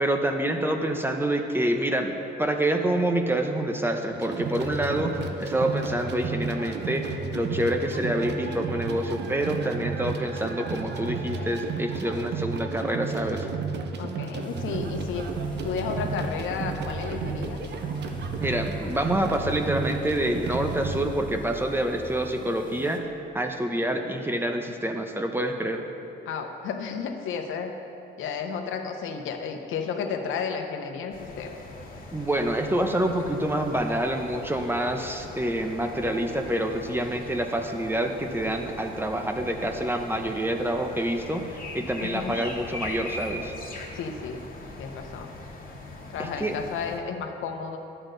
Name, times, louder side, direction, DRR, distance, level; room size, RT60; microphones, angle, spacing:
voice 1, 0.0-13.5 18.4-25.9 32.1-43.5 46.2-46.6, right 1 dB, 10° right, 4 dB, 0.8 m, -27 dB
sound 1, 4.1-21.0, right 5 dB, 60° right, 0.8 m, -32 dB
voice 2, 14.0-15.3 15.6-17.6 26.3-27.8 28.2-31.6 42.0-42.4 43.9-44.4 44.8-45.3 46.1-47.8, left 6 dB, 80° left, 5 dB, 0.9 m, -32 dB
sound 2, 14.4-23.0, left 3 dB, 20° left, 1.2 m, -41 dB
sound 3, 31.1-47.0, left 2 dB, 45° left, 1.7 m, -41 dB
11.0 x 7.9 x 3.9 m, 3.0 s
cardioid pair, 90°, 20 cm